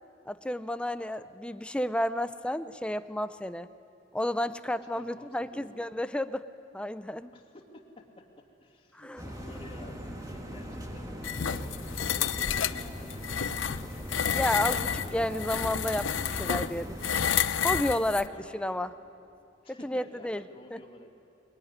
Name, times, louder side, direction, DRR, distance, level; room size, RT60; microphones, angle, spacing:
voice 1, 0.3-3.7 4.1-6.5 6.7-7.3 8.9-9.2 14.3-17.0 17.6-18.2 18.5-18.9 19.7-20.4 20.7-20.8, left 1 dB, 5° left, 12 dB, 0.5 m, -31 dB
voice 2, 4.9-5.9 7.3-11.2 12.0-13.5 15.1-15.4 18.1-18.9 19.6-21.1, left 1 dB, 30° left, 1 dB, 2.7 m, -51 dB
sound 1, 9.2-17.2, equal, 20° right, 2.0 m, -40 dB
sound 2, 11.2-18.3, left 8 dB, 75° left, 0.7 m, -30 dB
23.5 x 21.0 x 9.9 m, 2.6 s
head